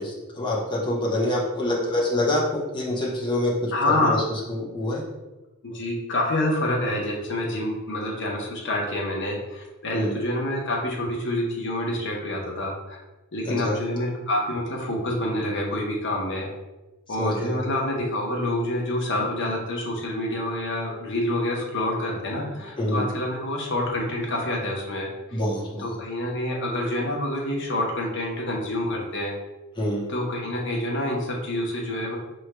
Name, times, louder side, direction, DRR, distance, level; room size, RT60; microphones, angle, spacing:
voice 1, 0.0-4.2 4.5-5.0 9.9-10.2 13.4-13.8 17.2-17.6 22.8-23.0 25.3-25.8 29.8-30.1, left 1 dB, 20° left, -5 dB, 0.8 m, -26 dB
voice 2, 3.7-4.3 5.6-13.0 13.3-16.5 17.1-25.4 25.8-29.3 30.1-32.2, left 1 dB, 55° left, -1 dB, 0.8 m, -27 dB
6.0 x 3.1 x 2.2 m, 1.0 s
head